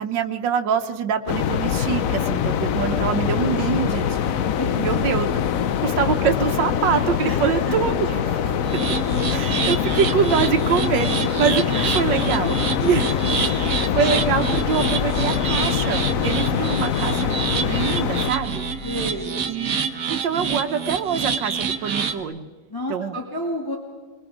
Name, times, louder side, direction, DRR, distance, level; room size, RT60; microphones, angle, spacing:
voice 1, 0.0-4.4 4.8-5.3 5.8-8.6 9.3-11.6 11.9-18.7 19.5-19.8 20.1-22.5 22.9-23.2, right 7 dB, 85° right, 6 dB, 1.6 m, -25 dB
sound 1, 1.3-18.3, left 8 dB, 60° left, 1.0 m, -23 dB
voice 2, 4.5-5.3 7.3-7.8 11.7-11.9 18.8-19.5 22.7-23.8, left 1 dB, 10° left, -2 dB, 2.5 m, -31 dB
sound 2, 8.7-22.2, right 6 dB, 55° right, 1.6 m, -27 dB
sound 3, 10.5-19.2, left 3 dB, 85° left, 4.0 m, -38 dB
24.5 x 21.5 x 5.0 m, 1.4 s
omnidirectional pair, 1.9 m